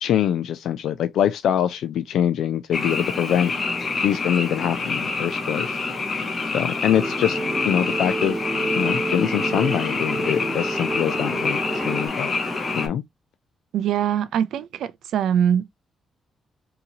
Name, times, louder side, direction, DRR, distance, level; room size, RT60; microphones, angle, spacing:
voice 1, 0.0-3.5 4.0-5.8 6.5-7.4 7.6-8.4 8.7-12.3 12.7-13.0, left 10 dB, 85° left, 0.4 m, -24 dB
Frog, 2.7-12.9, left 3 dB, 35° left, 1.2 m, -27 dB
sound 1, 6.9-12.1, right 2 dB, 5° right, 1.2 m, -29 dB
voice 2, 13.7-15.7, right 9 dB, 85° right, 0.4 m, -22 dB
3.9 x 2.8 x 2.7 m
cardioid pair, 115°, 0 cm